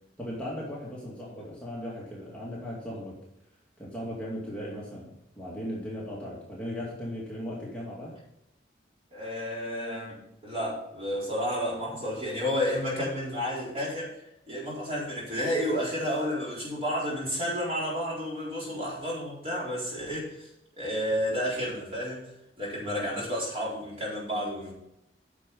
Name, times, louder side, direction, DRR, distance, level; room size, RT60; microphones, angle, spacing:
voice 1, 0.2-3.2 3.8-8.2 22.8-23.1, equal, 5° left, -6 dB, 2.4 m, -37 dB
voice 2, 9.1-14.2 14.5-20.5 20.8-22.2 22.6-24.7, equal, 30° right, -5 dB, 4.3 m, -31 dB
10.0 x 6.8 x 5.5 m, 0.82 s
head